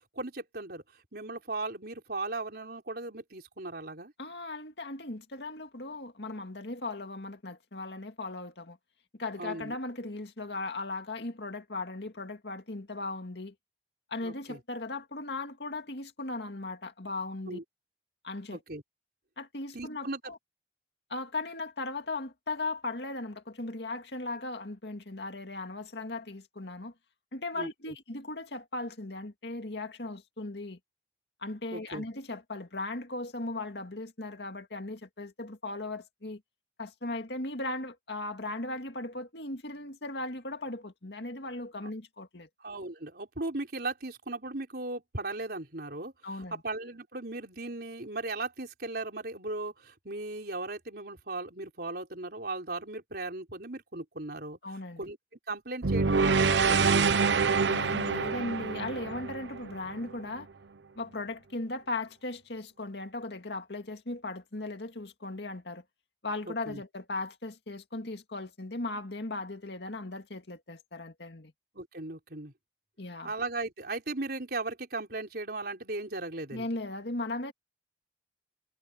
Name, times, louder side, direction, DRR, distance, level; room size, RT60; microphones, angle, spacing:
voice 1, 0.1-0.8 1.1-4.1 9.4-9.7 14.2-14.6 17.5-17.6 18.5-18.8 19.7-20.3 27.5-27.9 31.7-32.0 42.6-46.1 46.6-54.6 55.0-55.2 55.5-57.2 66.4-66.8 71.7-72.5 73.2-76.7, right 2 dB, 60° right, 4.7 m, -37 dB
voice 2, 4.2-8.8 9.2-13.5 14.1-17.6 18.2-18.6 19.4-20.4 21.1-26.9 27.3-30.8 31.4-36.4 36.8-42.5 46.2-46.6 54.6-55.1 57.7-60.5 61.0-65.8 66.2-71.5 73.0-73.3 76.5-77.5, left 2 dB, 65° left, 2.2 m, -37 dB
sound 1, 55.8-60.1, right 5 dB, 75° right, 0.8 m, -26 dB
head